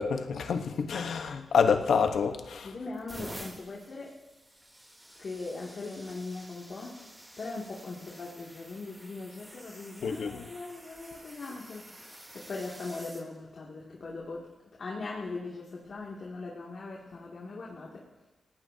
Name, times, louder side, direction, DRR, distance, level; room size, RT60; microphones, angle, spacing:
voice 1, 0.0-2.7 10.0-10.4, left 6 dB, 80° left, 1.1 m, -27 dB
sound 1, 2.1-2.4 2.9-13.2 14.1-14.4 15.9-16.1, equal, 10° right, 3.2 m, -49 dB
voice 2, 2.6-4.2 5.2-18.1, left 3 dB, 60° left, 2.4 m, -40 dB
29.5 x 17.5 x 2.8 m
cardioid pair, 75°, 0 cm